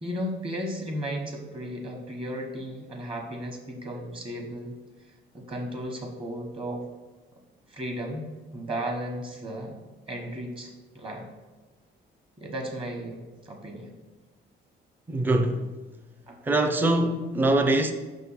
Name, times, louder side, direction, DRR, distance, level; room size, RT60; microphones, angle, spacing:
voice 1, 0.0-4.8 5.3-6.9 7.7-11.3 12.4-13.2 13.4-13.9 16.3-16.4, equal, 25° right, 1.1 m, -35 dB
voice 2, 15.1-15.8 16.4-17.9, right 2 dB, 10° right, 0.4 m, -23 dB
5.8 x 3.7 x 5.6 m
cardioid pair, 140°, 19 cm